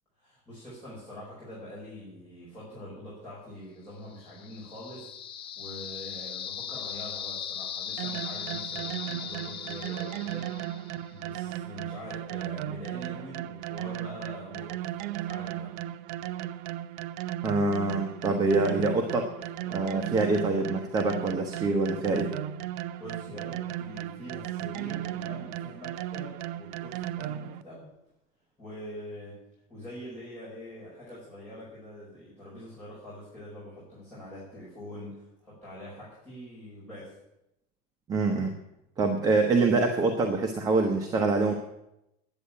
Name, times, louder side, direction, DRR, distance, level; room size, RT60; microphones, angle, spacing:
voice 1, 0.2-15.7 23.0-27.9 28.6-37.1, left 1 dB, 10° left, -9 dB, 5.2 m, -44 dB
sound 1, 4.1-11.1, left 8 dB, 30° left, 0.5 m, -38 dB
sound 2, 8.0-27.6, right 13 dB, 75° right, 0.6 m, -36 dB
voice 2, 17.4-19.3 19.7-22.3 38.1-38.5 39.0-41.5, right 3 dB, 20° right, 4 dB, 0.9 m, -25 dB
10.0 x 8.5 x 8.5 m, 0.86 s
cardioid pair, 175°, 18 cm